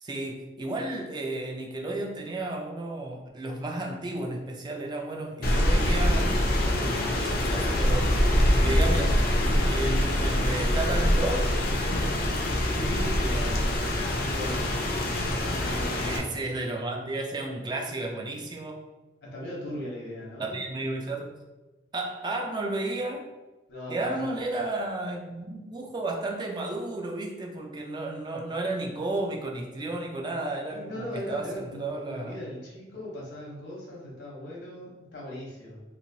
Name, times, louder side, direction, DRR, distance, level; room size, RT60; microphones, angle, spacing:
voice 1, 0.0-6.4 7.5-9.2 9.7-11.5 16.1-18.9 20.4-21.3 21.9-23.3 23.9-32.4, right 2 dB, 25° right, 1 dB, 0.3 m, -33 dB
Rain, 5.4-16.2, left 1 dB, 55° left, 0.5 m, -24 dB
voice 2, 12.5-14.7 15.5-16.4 19.2-20.6 23.7-24.2 30.7-35.8, left 1 dB, 75° left, -4 dB, 1.0 m, -38 dB
3.0 x 2.5 x 2.7 m, 1.1 s
head